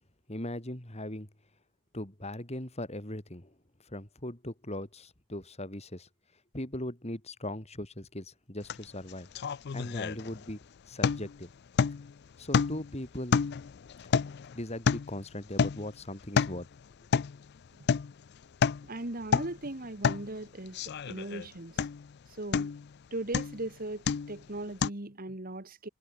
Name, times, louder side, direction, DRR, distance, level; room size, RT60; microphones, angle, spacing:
voice 1, 0.3-1.3 1.9-3.6 3.8-6.1 6.5-9.3 9.7-10.6 10.9-11.5 12.4-13.4 14.1-14.2 14.5-16.7, left 1 dB, 30° left, 3.4 m, -39 dB
sound 1, 8.7-8.8 9.1-10.6 11.0-11.4 11.8-12.1 12.5-13.0 13.3-15.2 15.6-15.9 16.2-16.6 17.1-17.4 17.9-18.1 18.4-18.9 19.2-19.6 20.0-20.3 20.7-21.5 21.8-22.1 22.5-22.9 23.3-23.6 24.1-24.4 24.8-24.9, left 6 dB, 50° left, 0.4 m, -29 dB
voice 2, 18.8-21.9 22.4-22.7 23.1-25.9, right 2 dB, 40° right, 1.8 m, -38 dB
head